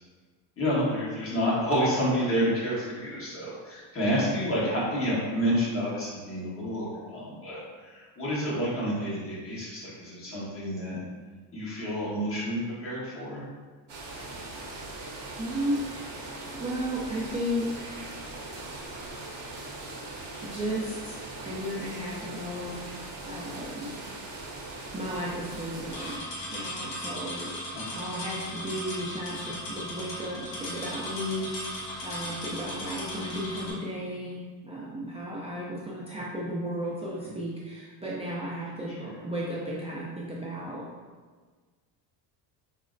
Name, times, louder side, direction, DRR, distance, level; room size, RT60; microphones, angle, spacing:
voice 1, 0.6-11.0 11.5-13.4 27.7-28.0 39.0-39.1, equal, 25° left, -7 dB, 1.3 m, -29 dB
sound 1, 13.9-26.2, right 2 dB, 35° right, 0.8 m, -40 dB
voice 2, 14.5-15.0 15.4-18.1 19.0-19.1 20.4-23.9 24.9-26.2 26.4-27.6 27.9-38.9 39.2-40.9, equal, 15° right, -7 dB, 0.3 m, -34 dB
sound 2, 25.9-33.7, left 1 dB, 70° left, 1.2 m, -37 dB
4.9 x 2.0 x 2.5 m, 1.5 s
supercardioid pair, 100°, 48 cm